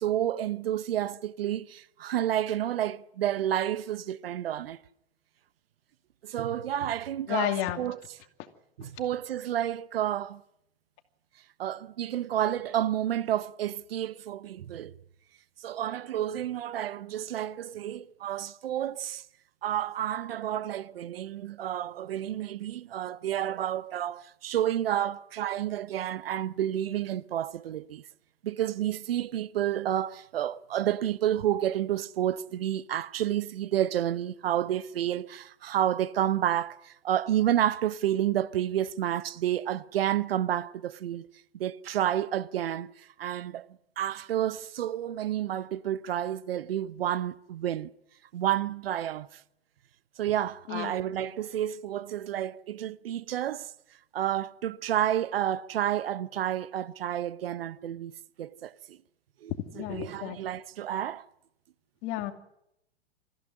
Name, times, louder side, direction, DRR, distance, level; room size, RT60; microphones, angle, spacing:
voice 1, 0.0-4.8 6.2-8.2 8.8-10.4 11.6-15.0 15.6-19.2 19.6-28.0 28.4-41.3 41.5-43.6 44.0-47.9 48.3-49.4 50.2-53.7 54.1-58.1 58.4-59.0 59.4-61.3, right 11 dB, 65° right, 0.9 m, -30 dB
voice 2, 7.3-7.8 50.7-50.9 59.7-60.4 62.0-62.3, left 13 dB, 40° left, 2.5 m, -31 dB
25.5 x 15.5 x 9.8 m
hypercardioid pair, 115°, 31 cm